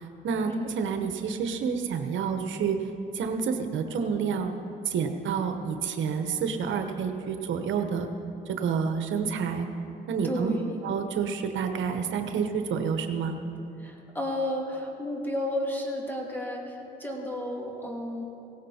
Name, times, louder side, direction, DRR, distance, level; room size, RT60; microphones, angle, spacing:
voice 1, 0.2-2.8 3.1-4.5 4.8-8.1 8.6-9.7 10.1-10.5 10.8-13.4, right 6 dB, 75° right, 6 dB, 1.1 m, -29 dB
voice 2, 10.2-10.8 13.8-18.3, left 1 dB, 10° left, -1 dB, 2.8 m, -32 dB
17.5 x 16.0 x 4.3 m, 2.8 s
cardioid pair, 90°, 20 cm